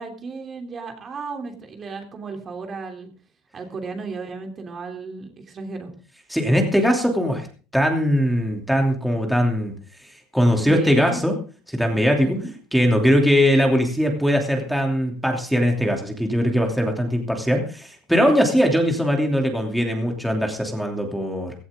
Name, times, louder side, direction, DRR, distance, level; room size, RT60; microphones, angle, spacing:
voice 1, 0.0-3.1 3.5-5.9 10.6-11.2 12.2-12.5, right 4 dB, 30° right, 4 dB, 3.1 m, -34 dB
voice 2, 6.3-7.5 7.7-9.7 10.3-11.3 11.7-12.4 12.7-21.5, equal, ahead, 2 dB, 2.8 m, -20 dB
16.5 x 14.0 x 3.7 m, 0.38 s
supercardioid pair, 120°, 0 cm